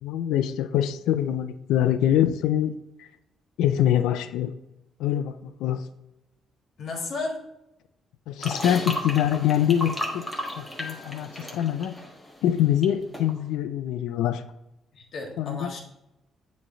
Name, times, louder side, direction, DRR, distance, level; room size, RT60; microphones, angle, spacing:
voice 1, 0.0-2.7 3.0-3.1 3.6-4.5 5.0-5.9 8.3-10.3 10.6-11.9 12.4-14.4 15.4-15.7, left 10 dB, 90° left, 12 dB, 0.3 m, -24 dB
voice 2, 6.8-7.4 14.9-15.8, left 3 dB, 60° left, 1 dB, 1.6 m, -33 dB
sound 1, 8.4-12.9 13.1-13.3, left 1 dB, 10° left, 1.3 m, -34 dB
7.5 x 3.1 x 4.9 m, 0.90 s
cardioid pair, 90°, 0 cm